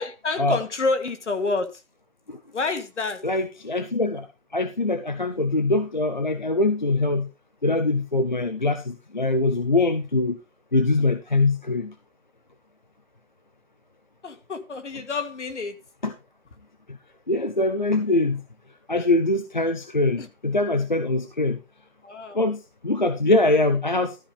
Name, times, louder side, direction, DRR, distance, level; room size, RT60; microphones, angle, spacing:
voice 1, 0.0-1.8 2.5-3.2 14.2-15.8 20.2-20.3 22.0-22.4 23.4-23.6, left 3 dB, 60° left, 1.8 m, -28 dB
voice 2, 3.2-7.3 7.6-10.4 10.7-11.9 16.0-16.1 17.3-18.4 18.9-21.6 22.3-24.2, left 2 dB, 35° left, 0.6 m, -23 dB
13.0 x 4.8 x 5.1 m
hypercardioid pair, 175°, 40 cm